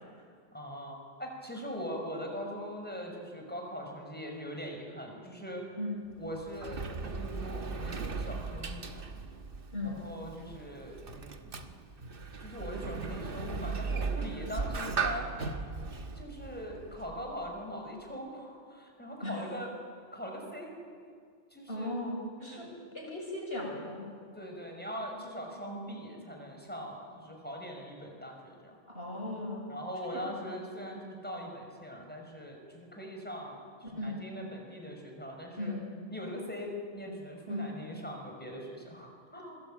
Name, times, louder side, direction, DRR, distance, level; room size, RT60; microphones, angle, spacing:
voice 1, 0.5-5.6 6.2-9.1 9.8-11.7 12.4-15.3 16.2-19.7 20.1-20.8 21.5-21.9 22.4-22.7 24.3-28.8 29.7-35.7 36.1-39.6, equal, 10° left, 1 dB, 5.7 m, -41 dB
Sliding door, 6.1-17.5, right 4 dB, 50° right, 1.4 m, -38 dB
voice 2, 21.7-22.7 22.9-24.1 28.9-29.7 30.0-30.3 34.0-34.2 35.6-35.9 37.5-37.7, left 1 dB, 55° left, -1 dB, 7.0 m, -37 dB
27.0 x 21.0 x 9.0 m, 2.1 s
omnidirectional pair, 1.2 m